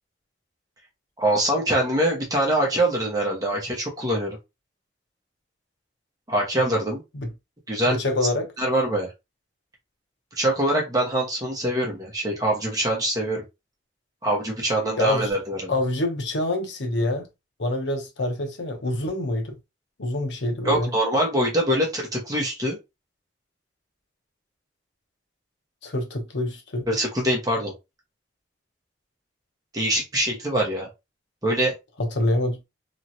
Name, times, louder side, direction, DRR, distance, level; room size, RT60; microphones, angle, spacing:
voice 1, 1.2-4.4 6.3-7.0 7.7-8.0 8.6-9.1 10.4-13.4 14.2-15.7 20.6-22.8 26.9-27.7 29.7-30.9 31.4-31.7, right 1 dB, 20° right, 0.9 m, -24 dB
voice 2, 7.8-8.5 15.0-15.3 15.7-17.3 17.6-19.6 20.0-20.9 25.8-26.8 32.0-32.6, left 1 dB, 80° left, 0.9 m, -26 dB
3.0 x 2.4 x 2.7 m
head